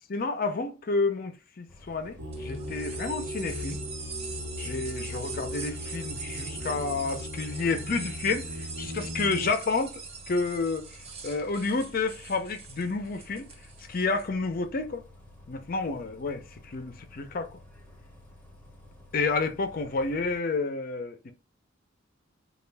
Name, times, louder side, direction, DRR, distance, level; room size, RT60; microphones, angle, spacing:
voice 1, 0.1-3.8 4.6-9.9 10.3-10.8 11.2-13.5 13.8-15.0 15.5-17.6 19.1-21.3, left 3 dB, 50° left, 0.5 m, -30 dB
Bus, 1.7-20.4, left 1 dB, 10° left, 0.8 m, -52 dB
sound 1, 2.2-9.5, left 1 dB, 85° right, 0.9 m, -38 dB
sound 2, 2.3-14.3, right 5 dB, 35° right, 0.6 m, -42 dB
3.4 x 2.4 x 3.3 m
head